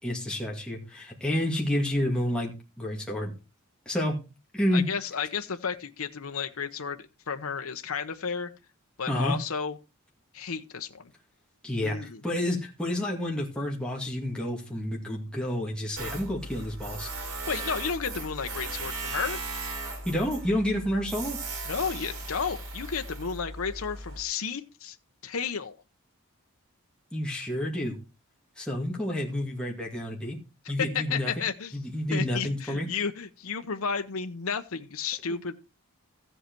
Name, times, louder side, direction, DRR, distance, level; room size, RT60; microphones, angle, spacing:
voice 1, 0.0-3.3 3.9-4.2 4.5-4.9 9.1-9.4 11.6-17.1 20.0-21.4 27.1-28.0 28.6-30.4 30.7-31.3 31.7-32.9, left 1 dB, 5° left, -2 dB, 2.2 m, -29 dB
voice 2, 4.7-8.5 9.0-9.8 10.3-11.1 11.8-12.2 17.2-19.4 21.7-25.0 25.2-25.7 30.9-31.8 32.1-35.5, left 6 dB, 75° left, 7 dB, 0.8 m, -32 dB
Tools, 16.0-24.2, right 2 dB, 90° right, 4.1 m, -37 dB
14.5 x 7.9 x 4.5 m, 0.29 s
head